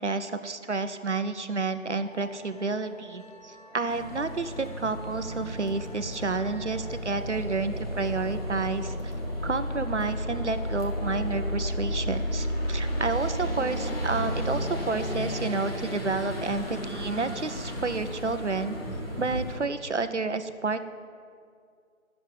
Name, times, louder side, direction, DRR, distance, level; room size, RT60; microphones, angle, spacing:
voice 1, 0.0-9.1 9.4-18.8 19.2-20.9, right 3 dB, 55° right, 10 dB, 0.7 m, -30 dB
Musical instrument, 2.0-17.5, right 2 dB, 30° right, 1.4 m, -51 dB
sound 1, 3.9-19.6, equal, 45° left, 1.7 m, -33 dB
10.5 x 7.2 x 8.0 m, 2.3 s
figure-of-eight pair, 170°, 42 cm